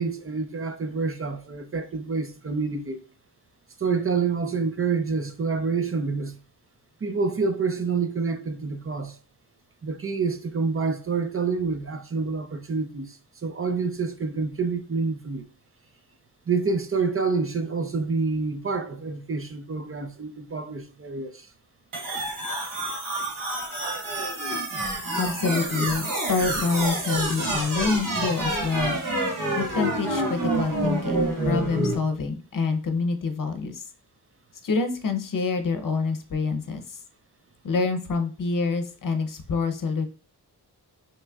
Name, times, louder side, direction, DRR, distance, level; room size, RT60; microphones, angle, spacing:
voice 1, 0.0-3.0 3.8-6.4 7.0-9.2 9.8-15.4 16.5-21.5, right 4 dB, 35° right, 0.6 m, -27 dB
sound 1, 21.9-31.9, right 1 dB, 55° right, 1.6 m, -28 dB
voice 2, 25.2-29.0 29.5-33.8 34.6-37.0 37.6-40.1, left 4 dB, 55° left, 0.7 m, -27 dB
6.0 x 3.1 x 2.3 m
wide cardioid pair, 130°, 39 cm